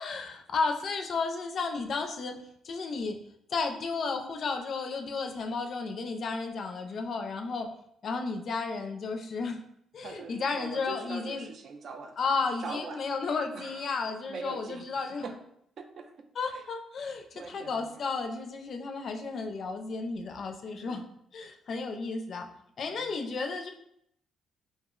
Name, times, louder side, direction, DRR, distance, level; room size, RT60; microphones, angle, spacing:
voice 1, 0.0-2.4 2.6-3.2 3.5-7.7 8.0-9.6 9.9-11.5 12.2-15.2 16.4-21.0 21.3-22.5 22.8-23.7, left 4 dB, 55° left, 4 dB, 0.4 m, -33 dB
voice 2, 10.0-13.2 13.5-13.9 14.3-14.9 15.2-15.3 15.8-16.1 16.5-16.6 17.3-18.0 20.8-21.0 22.9-23.2, right 5 dB, 60° right, 6 dB, 0.4 m, -42 dB
2.6 x 2.0 x 3.6 m, 0.74 s
cardioid pair, 90°, 0 cm